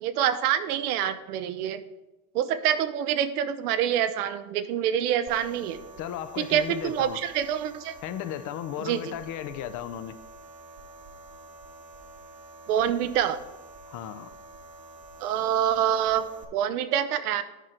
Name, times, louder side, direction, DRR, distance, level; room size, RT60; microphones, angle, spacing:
voice 1, 0.0-1.8 2.3-5.8 6.4-7.9 8.8-9.0 12.7-13.4 15.2-16.2 16.5-17.4, right 10 dB, 80° right, 12 dB, 0.8 m, -26 dB
sound 1, 5.3-16.4, right 2 dB, 55° right, 1.3 m, -48 dB
voice 2, 6.0-7.2 8.0-10.1 13.9-14.3, left 11 dB, 45° left, 13 dB, 0.6 m, -35 dB
10.5 x 4.8 x 4.4 m, 0.99 s
supercardioid pair, 105°, 45 cm